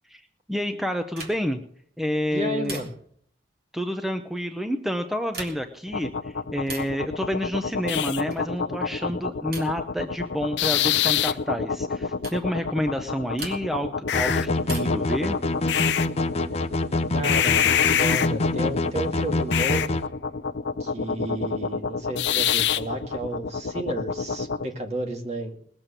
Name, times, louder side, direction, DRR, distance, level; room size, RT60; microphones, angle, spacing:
voice 1, 0.5-1.6 2.0-2.8 3.7-15.4, equal, ahead, 6 dB, 0.7 m, -29 dB
sound 1, 1.1-1.6 2.6-3.2 5.2-5.8 6.6-7.0 8.3-8.6 9.5-9.9 11.2-11.4 12.2-12.5 13.4-13.9 14.6-15.1 16.6-17.3, right 3 dB, 60° right, 3.3 m, -40 dB
voice 2, 2.3-2.9 17.1-17.7 18.0-20.0 20.8-25.6, right 1 dB, 40° right, 3 dB, 2.1 m, -32 dB
sound 2, 5.9-24.7, left 7 dB, 75° left, 0.5 m, -27 dB
sound 3, 14.1-20.0, left 2 dB, 35° left, 0.7 m, -26 dB
20.0 x 7.4 x 6.7 m, 0.64 s
head